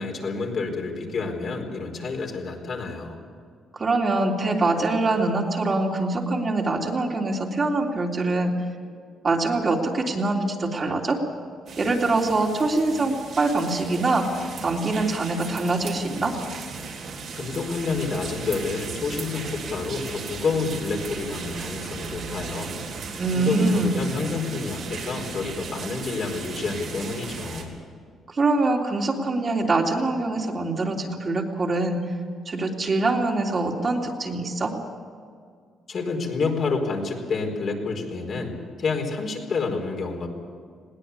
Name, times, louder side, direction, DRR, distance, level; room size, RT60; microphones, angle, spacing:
voice 1, 0.0-3.2 17.3-22.7 23.3-27.7 35.9-40.3, left 4 dB, 55° left, 1 dB, 4.5 m, -29 dB
voice 2, 3.7-8.5 9.2-11.2 11.8-16.3 23.2-24.0 28.3-32.0 32.4-34.7, right 2 dB, 35° right, 0 dB, 3.3 m, -24 dB
sound 1, 11.7-27.6, right 4 dB, 65° right, 4.0 m, -36 dB
21.0 x 17.5 x 8.5 m, 2.1 s
cardioid pair, 90°, 0 cm